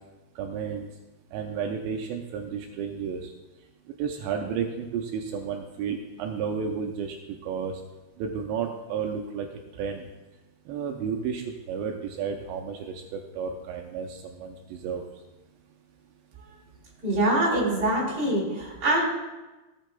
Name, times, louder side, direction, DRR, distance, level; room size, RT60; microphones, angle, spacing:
voice 1, 0.4-0.9 1.3-3.3 4.0-7.2 7.4-7.8 8.2-9.5 9.8-10.0 10.7-15.0, right 6 dB, 80° right, 2 dB, 2.8 m, -32 dB
voice 2, 17.0-19.0, right 1 dB, 20° right, -5 dB, 3.2 m, -24 dB
17.0 x 8.3 x 2.3 m, 1.1 s
omnidirectional pair, 5.2 m